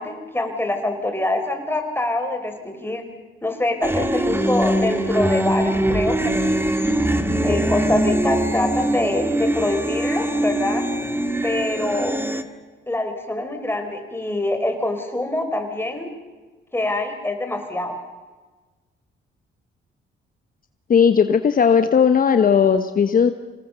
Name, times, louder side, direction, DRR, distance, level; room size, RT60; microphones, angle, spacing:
voice 1, 0.0-3.0 3.4-6.6 7.4-10.9 11.4-12.2 12.9-16.1 16.7-18.0, left 2 dB, 10° left, 5 dB, 4.1 m, -25 dB
sound 1, 3.8-12.4, right 1 dB, 10° right, 1.9 m, -22 dB
voice 2, 20.9-23.3, left 7 dB, 45° left, 9 dB, 1.1 m, -16 dB
26.5 x 18.5 x 6.9 m, 1.3 s
cardioid pair, 90°, 20 cm